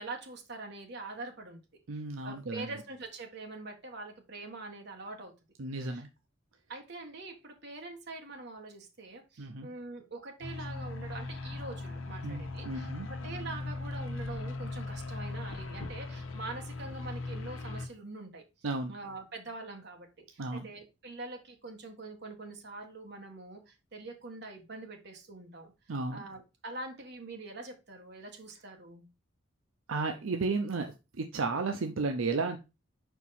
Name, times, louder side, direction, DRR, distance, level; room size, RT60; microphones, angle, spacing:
voice 1, 0.0-1.6 1.9-5.3 5.8-6.1 6.7-18.4 18.9-25.7 26.1-29.0, right 3 dB, 55° right, 3 dB, 1.5 m, -44 dB
voice 2, 1.9-2.7 5.6-6.1 9.4-9.7 12.2-13.1 18.6-18.9 20.4-20.7 25.9-26.2 29.9-32.6, right 3 dB, 80° right, 5 dB, 0.6 m, -33 dB
sound 1, 10.4-17.9, left 3 dB, 80° left, 1.0 m, -39 dB
5.6 x 4.5 x 4.1 m, 0.27 s
head